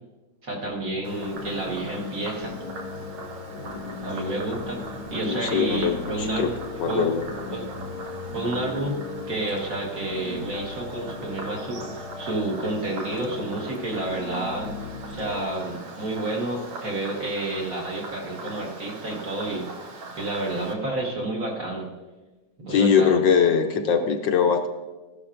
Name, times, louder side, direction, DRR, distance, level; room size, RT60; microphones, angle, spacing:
voice 1, 0.4-2.6 4.0-6.6 6.9-7.1 7.5-7.7 8.3-9.0 9.3-14.7 15.1-21.9 22.6-23.2, right 2 dB, 45° right, -1 dB, 1.7 m, -30 dB
sound 1, 0.6-15.5, left 4 dB, 90° left, 2.0 m, -37 dB
Frog, 1.0-20.7, right 3 dB, 75° right, 1.9 m, -41 dB
voice 2, 5.2-6.5 6.8-7.2 22.7-24.7, left 6 dB, 70° left, 4 dB, 1.3 m, -21 dB
15.0 x 11.5 x 2.5 m, 1.2 s
omnidirectional pair, 2.3 m